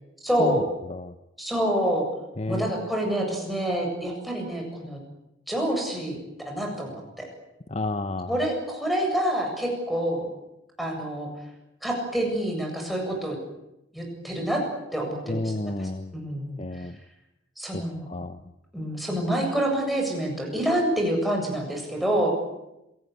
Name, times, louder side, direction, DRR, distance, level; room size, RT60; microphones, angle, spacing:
voice 1, 0.2-0.6 1.4-2.1 2.5-5.0 5.5-6.2 6.4-7.3 8.3-10.3 10.8-11.3 11.8-13.4 13.9-14.6 14.9-16.9 17.6-18.1 18.7-22.3, right 1 dB, ahead, 0 dB, 7.7 m, -27 dB
voice 2, 2.4-2.7 7.7-8.3 15.3-16.1 16.6-16.9 18.1-18.4, left 2 dB, 30° left, 10 dB, 0.9 m, -30 dB
26.0 x 18.5 x 9.8 m, 0.91 s
head